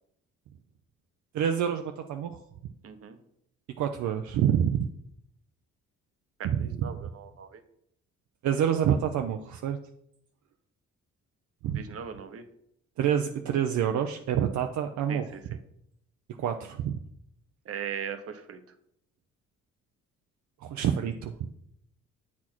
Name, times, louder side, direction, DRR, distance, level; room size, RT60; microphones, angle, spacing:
voice 1, 1.3-2.4 3.8-4.9 6.4-6.6 8.4-9.8 11.6-11.8 13.0-15.2 16.4-17.0 20.6-21.3, right 9 dB, 70° right, 5 dB, 0.6 m, -27 dB
voice 2, 2.8-3.2 6.6-7.6 11.7-12.4 15.1-15.6 17.7-18.6, right 7 dB, 50° right, 9 dB, 0.9 m, -39 dB
8.3 x 4.3 x 4.4 m, 0.72 s
cardioid pair, 90°, 30 cm